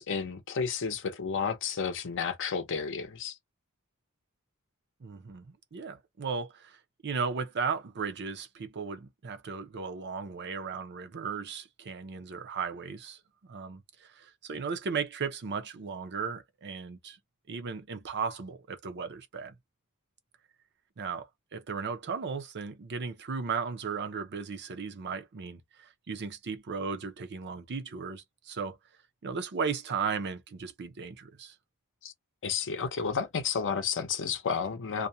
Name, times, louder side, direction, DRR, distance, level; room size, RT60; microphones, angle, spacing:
voice 1, 0.0-3.3 32.0-32.1 32.4-35.1, left 6 dB, 55° left, 0.6 m, -31 dB
voice 2, 5.0-5.5 5.7-6.8 7.0-13.2 13.5-17.2 17.5-19.5 21.0-28.8 29.2-31.5, right 5 dB, 50° right, 0.6 m, -36 dB
2.4 x 2.1 x 2.7 m
head